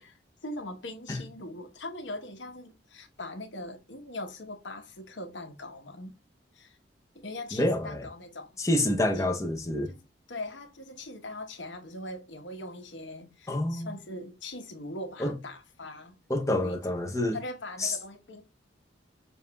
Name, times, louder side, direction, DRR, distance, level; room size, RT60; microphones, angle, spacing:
voice 1, 0.0-6.1 6.5-6.8 7.1-8.6 9.1-9.2 9.9-10.0 10.3-16.2 16.5-16.9 17.3-18.4, left 1 dB, 85° left, 1.1 m, -41 dB
voice 2, 7.5-8.0 8.6-9.9 13.5-13.9 15.2-15.3 16.3-17.4 17.8-17.9, left 1 dB, 15° left, 0.7 m, -27 dB
7.0 x 2.6 x 2.3 m
head